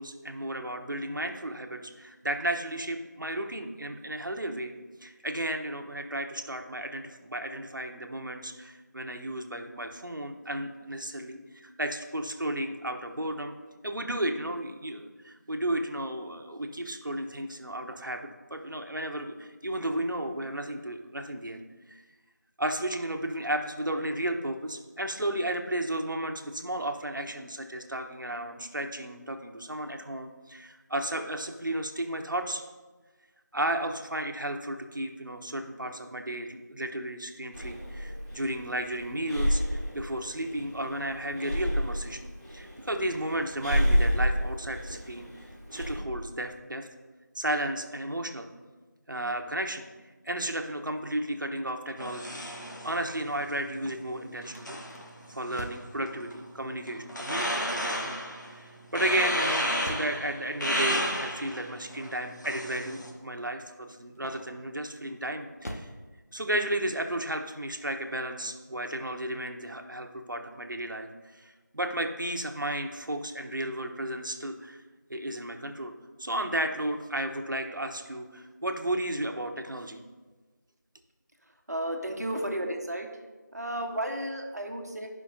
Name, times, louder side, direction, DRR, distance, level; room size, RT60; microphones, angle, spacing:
voice 1, 0.0-4.7 5.0-13.5 13.8-21.6 21.9-22.0 22.6-32.6 33.5-45.3 45.7-46.9 47.3-48.5 49.1-49.9 50.2-52.4 52.8-54.8 55.3-58.1 58.5-65.9 66.3-74.8 75.1-75.9 76.2-80.0, right 1 dB, 80° right, 5 dB, 1.1 m, -33 dB
Breathing, 37.5-46.0, equal, 20° right, 2.5 m, -30 dB
sound 1, 52.0-63.1, equal, 70° left, 1.5 m, -34 dB
sound 2, 53.7-56.0 58.9-60.2 64.1-64.7 65.2-66.0, equal, 50° left, 0.9 m, -43 dB
voice 2, 81.7-83.1 83.5-85.1, right 1 dB, 55° right, 2 dB, 1.2 m, -33 dB
16.0 x 5.6 x 2.8 m, 1.3 s
figure-of-eight pair, 180°, 10 cm